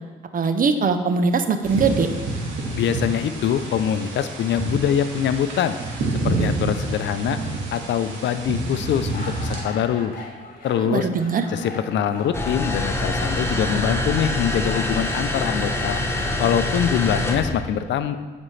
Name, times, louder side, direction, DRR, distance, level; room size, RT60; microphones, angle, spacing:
voice 1, 0.3-2.1 10.8-11.5, right 5 dB, 45° right, 8 dB, 0.7 m, -21 dB
sound 1, 1.6-9.6, right 2 dB, 85° right, 1.7 m, -28 dB
voice 2, 2.7-5.8 6.2-7.4 7.7-10.1 10.6-11.1 11.5-16.0 16.4-18.2, left 9 dB, 65° left, 11 dB, 0.5 m, -23 dB
sound 2, 8.8-16.3, left 2 dB, 45° left, 1.7 m, -41 dB
sound 3, 12.3-17.5, left 1 dB, 10° left, 0.9 m, -25 dB
9.9 x 5.2 x 3.2 m, 1.5 s
cardioid pair, 90°, 20 cm